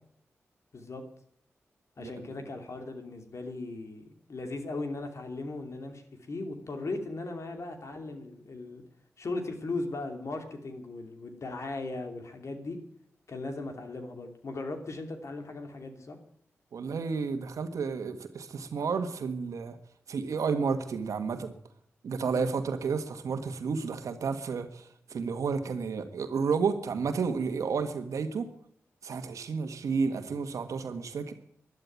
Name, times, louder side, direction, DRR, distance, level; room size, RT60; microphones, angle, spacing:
voice 1, 0.7-1.0 2.0-8.8 9.2-12.8 13.3-16.2 22.3-22.6, left 2 dB, 65° left, 6 dB, 2.8 m, -38 dB
voice 2, 16.7-19.8 20.1-21.5 22.0-28.5 29.0-31.3, right 5 dB, 80° right, 9 dB, 1.6 m, -31 dB
12.0 x 11.5 x 9.4 m, 0.68 s
cardioid pair, 40°, 5 cm